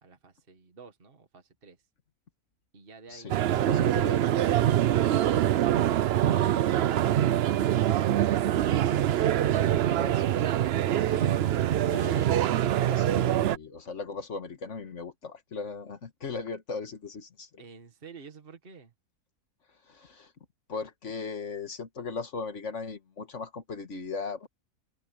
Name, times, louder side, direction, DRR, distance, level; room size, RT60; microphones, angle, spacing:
voice 1, 0.0-1.8 2.7-3.4 17.6-18.9, right 4 dB, 40° right, 2.0 m, -51 dB
voice 2, 3.1-4.2 9.9-10.3 11.1-11.4 11.9-17.5 19.9-20.3 20.7-24.5, left 4 dB, 55° left, 1.9 m, -38 dB
sound 1, 3.3-13.6, right 11 dB, 65° right, 0.6 m, -24 dB
open air
omnidirectional pair, 1.5 m